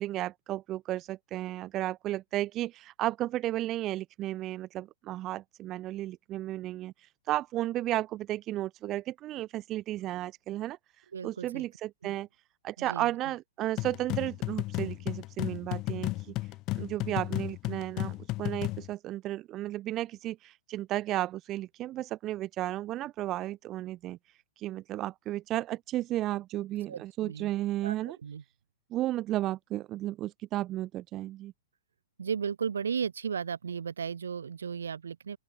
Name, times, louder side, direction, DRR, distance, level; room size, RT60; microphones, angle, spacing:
voice 1, 0.0-6.9 7.3-10.8 11.2-12.3 12.6-16.3 16.8-24.2 24.6-28.2 28.9-31.5, right 14 dB, 30° right, 0.7 m, -33 dB
voice 2, 11.1-11.6 12.0-12.1 12.8-13.1 26.9-27.5 27.8-27.9 28.2-28.4 32.2-35.4, right 7 dB, 80° right, 1.2 m, -35 dB
sound 1, 13.8-18.9, left 19 dB, 35° left, 0.6 m, -34 dB
open air
hypercardioid pair, 120°, 0 cm